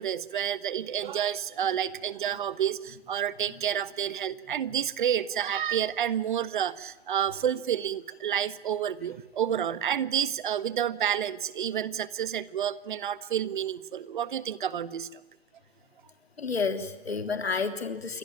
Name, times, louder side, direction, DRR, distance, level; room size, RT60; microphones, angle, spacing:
voice 1, 0.0-15.2, right 9 dB, 50° right, 16 dB, 1.5 m, -29 dB
voice 2, 16.4-18.2, left 5 dB, 75° left, 8 dB, 3.5 m, -30 dB
29.0 x 23.0 x 8.9 m, 1.0 s
figure-of-eight pair, 135°, 32 cm